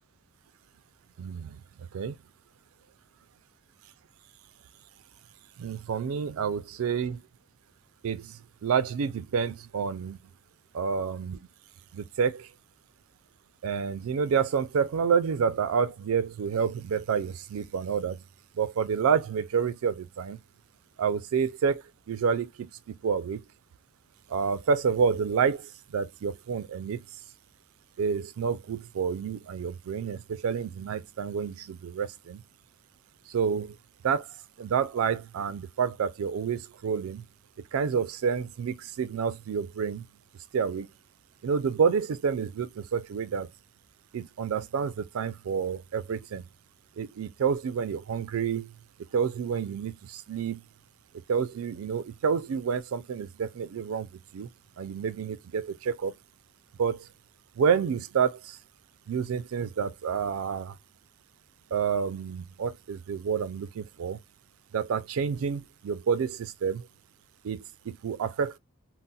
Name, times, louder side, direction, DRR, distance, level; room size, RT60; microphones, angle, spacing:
voice 1, 1.2-1.6 1.9-2.2 5.6-7.2 8.0-10.2 10.7-11.4 11.9-12.5 13.6-18.2 18.6-20.4 21.0-23.4 24.3-27.0 28.0-32.4 33.3-33.8 34.0-34.3 34.6-37.2 37.7-40.0 40.5-40.9 41.4-43.5 44.1-46.4 47.0-48.7 49.1-50.6 51.3-54.5 54.8-56.1 56.8-57.1 57.6-58.6 59.1-60.7 61.7-64.2 64.7-66.9 67.4-68.6, right 6 dB, 70° right, 0.3 m, -29 dB
3.9 x 2.0 x 2.3 m
head